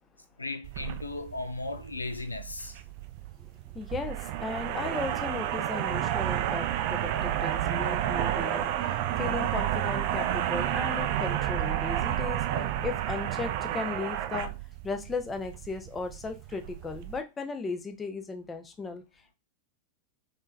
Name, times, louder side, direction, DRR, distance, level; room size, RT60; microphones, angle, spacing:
voice 1, 0.4-2.8, left 2 dB, 80° left, 0.3 m, -36 dB
sound 1, 0.6-17.2, right 11 dB, 45° right, 0.3 m, -31 dB
voice 2, 3.7-12.4 12.8-14.5 14.8-19.0, left 4 dB, 15° left, 0.6 m, -36 dB
3.3 x 3.2 x 2.4 m
figure-of-eight pair, 90°, 0 cm